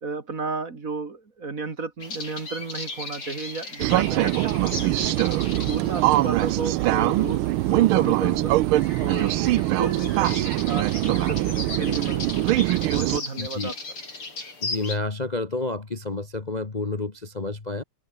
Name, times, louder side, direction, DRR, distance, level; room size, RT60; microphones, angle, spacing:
voice 1, 0.0-5.2 5.5-8.6 9.0-13.7, right 4 dB, 40° right, 2.6 m, -33 dB
sound 1, 2.0-15.0, left 3 dB, 90° left, 7.4 m, -37 dB
sound 2, 3.8-13.2, right 16 dB, 80° right, 1.5 m, -22 dB
voice 2, 13.4-13.7 14.6-17.8, left 2 dB, 25° left, 1.3 m, -30 dB
omnidirectional pair, 2.3 m